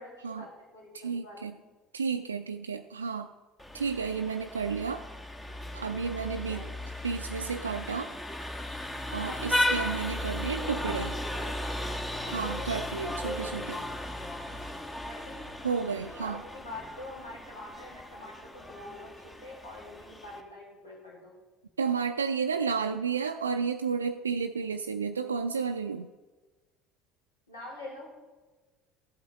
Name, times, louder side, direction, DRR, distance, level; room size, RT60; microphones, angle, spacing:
voice 1, 0.0-0.9 1.2-1.7 6.3-6.6 9.2-9.4 10.6-11.1 11.4-11.6 12.2-12.4 15.1-15.6 16.2-21.4 27.5-28.2, left 1 dB, 80° left, -5 dB, 3.8 m, -45 dB
voice 2, 0.9-1.6 1.9-3.3 3.7-5.0 5.7-6.7 7.0-8.1 9.1-11.1 12.3-13.9 15.6-16.4 21.8-26.1, right 5 dB, 80° right, 5 dB, 0.4 m, -32 dB
Vehicle horn car horn honking, 3.6-20.4, left 1 dB, 15° left, 1.2 m, -36 dB
14.5 x 8.4 x 3.4 m, 1.3 s
figure-of-eight pair, 60°, 0 cm